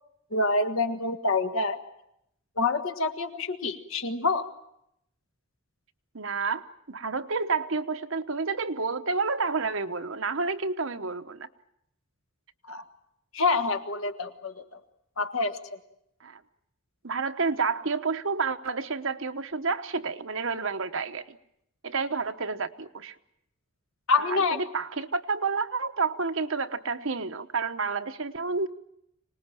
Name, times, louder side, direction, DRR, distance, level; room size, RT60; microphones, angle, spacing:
voice 1, 0.3-1.8 2.6-4.4 12.7-12.8 13.3-14.8 15.2-15.6 24.1-24.6, left 3 dB, 65° left, 7 dB, 1.6 m, -27 dB
voice 2, 6.1-11.5 16.2-16.4 17.0-21.4 21.8-23.1 24.2-28.7, right 4 dB, 60° right, 9 dB, 1.1 m, -30 dB
25.5 x 19.5 x 9.0 m, 0.78 s
head